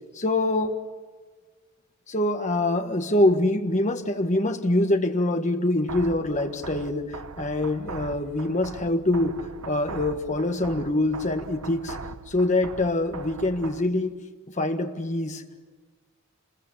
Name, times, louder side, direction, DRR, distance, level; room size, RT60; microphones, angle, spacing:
voice 1, 0.1-0.7 2.1-12.0 12.3-14.1 14.5-15.4, left 1 dB, 35° left, 6 dB, 1.6 m, -25 dB
sound 1, 5.9-13.9, right 4 dB, 85° right, 1.0 m, -41 dB
26.5 x 21.5 x 8.6 m, 1.4 s
head